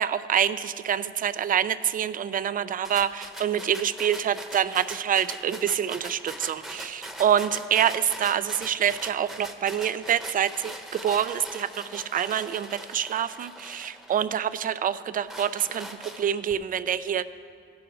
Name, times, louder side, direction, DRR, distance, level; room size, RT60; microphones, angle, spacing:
voice 1, 0.0-15.9 16.2-17.2, right 9 dB, 45° right, 14 dB, 0.4 m, -26 dB
sound 1, 2.8-14.5 15.0-16.5, right 1 dB, ahead, 1.0 m, -42 dB
16.5 x 6.3 x 4.7 m, 2.7 s
cardioid pair, 90°, 20 cm